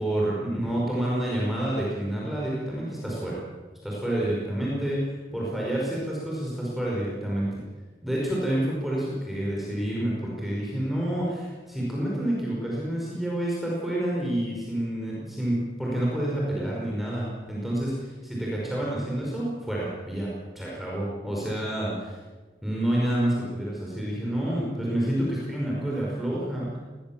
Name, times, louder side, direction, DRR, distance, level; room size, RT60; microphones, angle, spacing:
voice 1, 0.0-3.4 3.8-7.6 8.0-22.2 22.6-26.8, right 1 dB, ahead, -5 dB, 5.2 m, -28 dB
20.5 x 20.0 x 7.3 m, 1.3 s
head